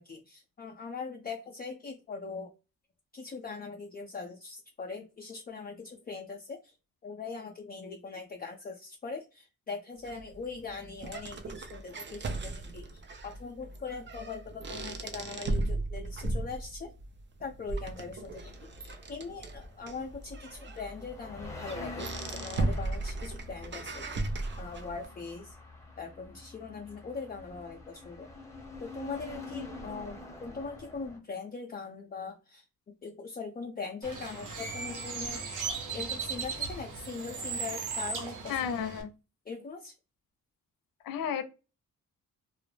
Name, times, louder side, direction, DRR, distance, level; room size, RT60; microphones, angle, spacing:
voice 1, 0.0-2.5 3.1-6.7 7.0-16.9 17.4-24.0 24.6-25.6 26.0-28.3 28.8-32.6 33.0-35.5 35.9-38.6 39.5-39.9, left 4 dB, 25° left, 2 dB, 0.5 m, -41 dB
sound 1, 10.0-25.0, right 2 dB, 35° right, 0.5 m, -37 dB
sound 2, 18.2-31.2, left 2 dB, 10° left, 0.9 m, -46 dB
Bird, 34.0-39.0, right 5 dB, 65° right, 0.8 m, -37 dB
voice 2, 38.5-39.1 41.0-41.4, left 8 dB, 85° left, 8 dB, 0.5 m, -32 dB
2.2 x 2.0 x 3.1 m, 0.29 s
cardioid pair, 70°, 34 cm